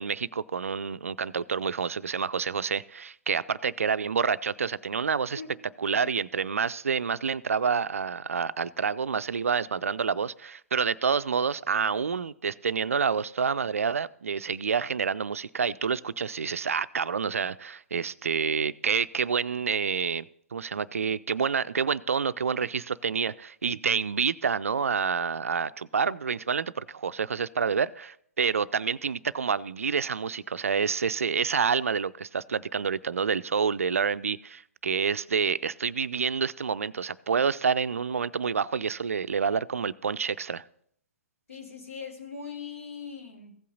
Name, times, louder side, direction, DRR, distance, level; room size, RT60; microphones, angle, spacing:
voice 1, 0.0-5.4 5.8-20.3 20.5-40.6, right 6 dB, 65° right, 16 dB, 0.3 m, -28 dB
voice 2, 41.5-43.6, left 6 dB, 65° left, 2 dB, 2.0 m, -41 dB
15.5 x 5.5 x 3.9 m, 0.66 s
figure-of-eight pair, 120°, 8 cm